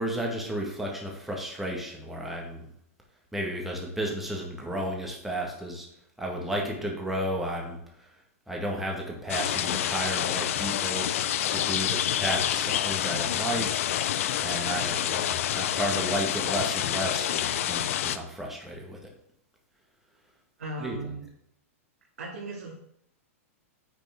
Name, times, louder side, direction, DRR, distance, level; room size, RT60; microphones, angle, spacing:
voice 1, 0.0-2.7 3.3-5.9 6.2-8.1 8.5-11.1 11.5-19.1 20.8-21.2, right 1 dB, 5° right, -2 dB, 1.7 m, -33 dB
sound 1, 9.3-18.2, left 11 dB, 65° left, 0.5 m, -28 dB
voice 2, 20.6-21.3 22.2-22.7, right 2 dB, 85° right, -7 dB, 2.6 m, -37 dB
9.3 x 4.1 x 3.7 m, 0.74 s
hypercardioid pair, 130°, 8 cm